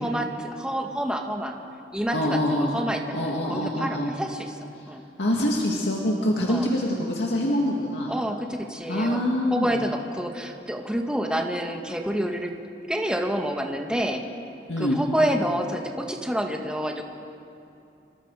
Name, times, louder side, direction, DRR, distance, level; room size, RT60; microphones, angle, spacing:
voice 1, 0.0-1.5 1.9-4.5 4.9-5.0 6.5-6.7 8.1-12.5 12.9-14.2 14.8-17.0, equal, 5° right, 2 dB, 1.5 m, -28 dB
voice 2, 2.1-2.7 3.1-4.1 5.2-8.1 8.9-9.7 14.7-15.0, left 1 dB, 80° left, -2 dB, 2.3 m, -25 dB
26.5 x 24.5 x 4.9 m, 2.7 s
head